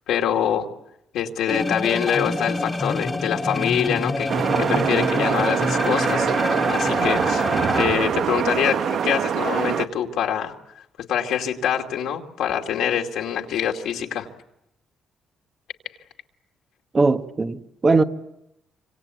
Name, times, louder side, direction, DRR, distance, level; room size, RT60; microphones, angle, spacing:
voice 1, 0.1-0.7 1.1-4.3 4.6-6.3 6.7-7.4 7.7-10.5 11.1-14.3, left 9 dB, 85° left, 2.5 m, -25 dB
sound 1, 1.5-7.8, left 2 dB, 20° left, 1.3 m, -26 dB
sound 2, 4.3-9.9, right 7 dB, 65° right, 1.0 m, -23 dB
voice 2, 16.9-18.0, right 3 dB, 30° right, 1.5 m, -19 dB
26.0 x 26.0 x 8.3 m
cardioid pair, 90°, 0 cm